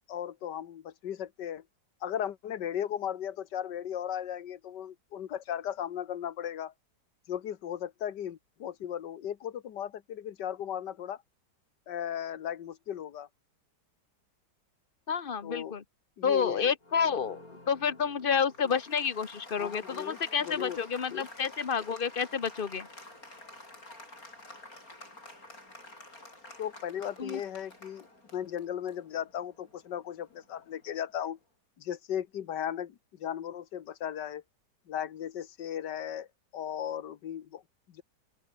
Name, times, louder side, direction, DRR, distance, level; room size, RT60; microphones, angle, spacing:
voice 1, 0.1-1.6 2.0-6.7 7.3-11.2 11.9-13.3 15.4-15.7 16.2-16.7 19.6-20.2 20.4-20.8 21.1-21.3 26.6-28.1 28.3-31.4 31.8-34.4 34.9-36.3 36.5-37.6 37.9-38.0, left 10 dB, 75° left, 1.8 m, -36 dB
voice 2, 15.1-15.8 16.2-22.9 27.2-27.4, left 6 dB, 35° left, 1.3 m, -30 dB
Applause, 16.8-31.2, left 2 dB, 50° left, 8.4 m, -50 dB
open air
omnidirectional pair, 1.9 m